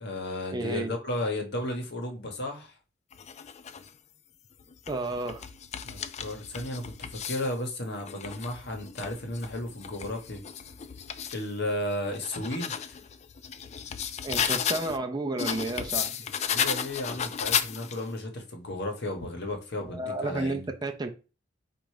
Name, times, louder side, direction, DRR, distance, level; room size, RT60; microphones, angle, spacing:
voice 1, 0.0-2.8 5.8-10.4 11.3-12.8 16.5-20.7, left 1 dB, 60° left, 1.1 m, -34 dB
voice 2, 0.5-0.9 4.9-5.5 14.2-16.3 19.8-21.1, right 2 dB, 20° right, 0.5 m, -32 dB
Hyacinthe write print & cursive hard surface edited, 3.1-3.9 4.6-7.5 8.0-11.4 11.9-15.0 15.4-18.1, left 8 dB, 35° left, 0.3 m, -34 dB
4.4 x 2.5 x 4.8 m
head